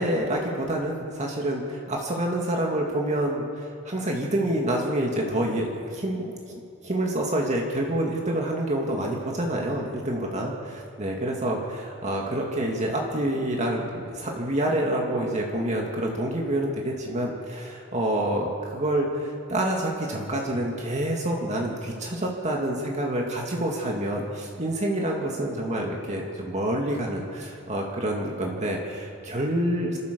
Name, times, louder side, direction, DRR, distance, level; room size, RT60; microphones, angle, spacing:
voice 1, 0.0-6.3 6.8-30.0, right 1 dB, 35° right, -1 dB, 2.3 m, -27 dB
27.5 x 14.0 x 6.9 m, 2.4 s
head